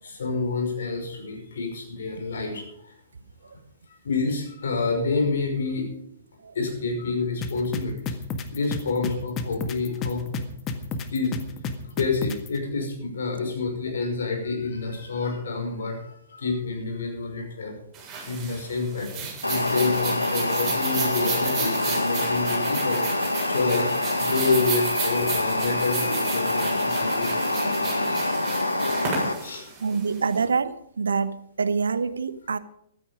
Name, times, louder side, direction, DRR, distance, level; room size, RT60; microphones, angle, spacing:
voice 1, 0.0-2.9 3.4-3.5 3.9-5.9 6.5-8.2 8.5-10.3 11.1-11.4 12.0-17.8 18.2-28.4 29.2-29.8, left 4 dB, 65° left, 3 dB, 5.6 m, -28 dB
sound 1, 7.4-12.5, left 4 dB, 25° left, 1.7 m, -30 dB
sound 2, 17.9-30.4, right 5 dB, 20° right, 7.6 m, -34 dB
sound 3, 19.4-29.3, left 2 dB, 90° left, 1.7 m, -26 dB
voice 2, 29.8-32.6, right 5 dB, 75° right, 15 dB, 0.9 m, -26 dB
15.0 x 12.5 x 5.1 m, 0.72 s
figure-of-eight pair, 115°, 0 cm